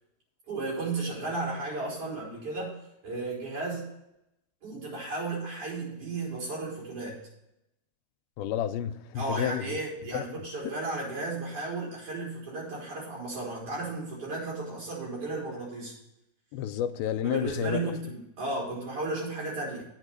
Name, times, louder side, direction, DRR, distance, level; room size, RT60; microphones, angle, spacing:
voice 1, 0.5-2.7 3.0-3.9 4.6-7.2 9.2-15.9 17.2-19.8, right 3 dB, 40° right, 5.1 m, -34 dB
voice 2, 8.4-9.8 10.1-10.4 16.5-17.9, left 10 dB, 85° left, 2.4 m, -30 dB
9.0 x 5.9 x 8.1 m
omnidirectional pair, 4.3 m